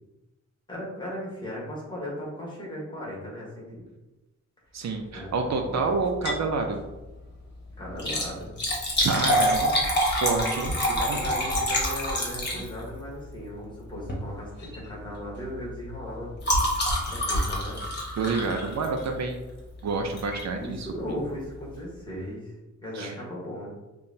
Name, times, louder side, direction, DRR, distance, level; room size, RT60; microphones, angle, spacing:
voice 1, 0.7-3.9 4.8-4.9 5.1-5.9 6.2-6.3 7.8-8.6 10.9-16.7 17.0-17.9 20.5-22.5 22.8-23.7, equal, 15° left, -5 dB, 1.2 m, -37 dB
voice 2, 4.7-6.8 9.0-11.2 18.2-19.4 19.8-20.9 22.9-23.1, right 4 dB, 65° right, 4 dB, 0.5 m, -28 dB
Liquid, 6.1-6.5 6.9-7.0 7.9-13.0 14.0-14.3 14.6-14.9 15.1-19.2 20.2-20.4 21.0-21.1 21.2-21.3, equal, 35° left, 1.0 m, -27 dB
5.4 x 2.3 x 2.6 m, 1.0 s
wide cardioid pair, 145°, 29 cm